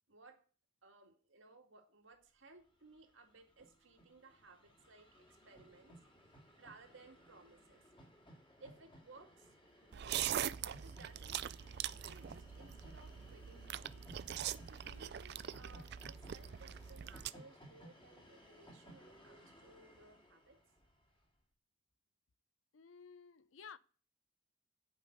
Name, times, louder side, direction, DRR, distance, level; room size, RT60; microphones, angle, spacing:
voice 1, 0.1-0.4 0.8-5.9 6.6-7.8 8.6-9.5 9.8-10.3 10.7-11.5 12.0-14.2 14.6-20.6, right 3 dB, 70° right, 2.1 m, -61 dB
Train, 2.6-2.7 2.9-21.3, equal, 25° left, 2.4 m, -60 dB
sound 1, 9.9-17.3, right 10 dB, 55° right, 0.4 m, -42 dB
voice 2, 22.7-23.8, left 6 dB, 80° left, 0.6 m, -54 dB
9.0 x 5.4 x 7.8 m
head